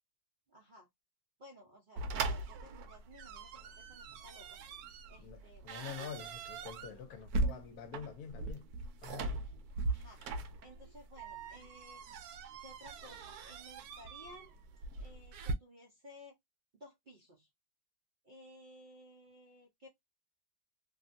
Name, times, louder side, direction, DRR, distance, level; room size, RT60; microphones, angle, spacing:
voice 1, 0.5-0.9 1.4-3.5 3.8-4.6 5.1-5.7 9.4-9.5 9.9-10.2 10.6-12.0 12.6-14.5 15.0-16.4 16.7-17.5 18.2-19.9, left 1 dB, 50° right, 0.6 m, -56 dB
sound 1, 2.0-15.5, right 3 dB, 75° right, 1.0 m, -40 dB
voice 2, 5.2-8.6 9.0-9.4 10.2-10.4, left 7 dB, 75° left, 1.1 m, -47 dB
2.8 x 2.6 x 2.4 m
omnidirectional pair, 1.7 m